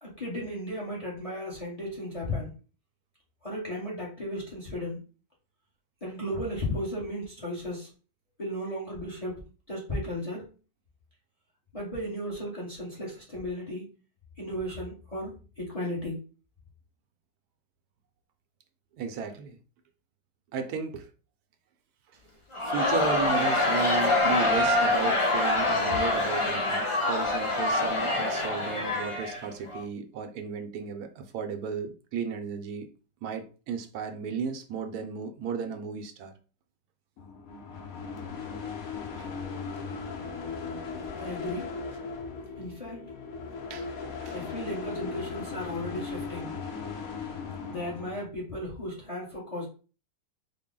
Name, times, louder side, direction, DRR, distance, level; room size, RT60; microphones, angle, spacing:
voice 1, 0.0-2.5 3.4-5.0 6.0-7.9 8.4-10.5 11.7-13.9 14.4-16.2 41.2-41.7 42.6-43.1 44.3-46.5 47.7-49.7, left 1 dB, 25° left, 0.9 m, -35 dB
voice 2, 19.0-19.6 20.5-21.1 22.6-32.9 33.2-36.3 39.2-39.3 43.7-43.9 44.2-44.4, right 6 dB, 75° right, 1.1 m, -34 dB
Crowd, 22.5-29.8, left 2 dB, 50° left, 0.3 m, -25 dB
sound 1, 37.2-48.3, left 5 dB, 65° left, 1.1 m, -38 dB
3.9 x 2.1 x 3.7 m
omnidirectional pair, 1.7 m